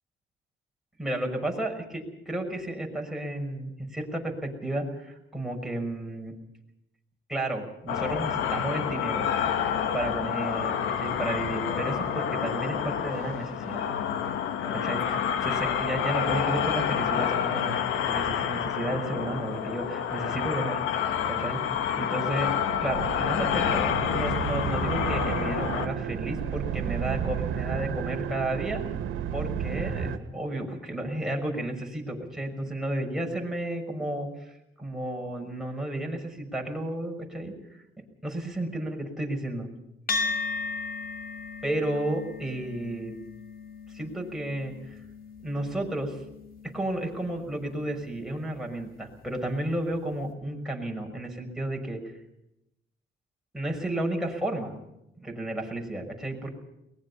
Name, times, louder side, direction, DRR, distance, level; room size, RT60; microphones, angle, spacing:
voice 1, 1.0-6.3 7.3-9.3 9.9-13.9 14.7-17.8 18.1-21.6 22.0-22.5 22.8-28.8 29.3-34.5 34.8-37.5 38.2-39.7 41.6-43.1 43.9-44.7 45.4-46.2 46.7-52.0 53.5-54.7 55.2-56.5, right 1 dB, ahead, 0 dB, 6.2 m, -32 dB
sound 1, 7.9-25.9, left 8 dB, 90° left, 1.7 m, -28 dB
sound 2, 22.7-30.2, right 8 dB, 85° right, 2.1 m, -32 dB
sound 3, 40.1-48.7, left 3 dB, 50° left, 2.6 m, -37 dB
23.0 x 20.5 x 5.7 m, 0.85 s
cardioid pair, 90°, 20 cm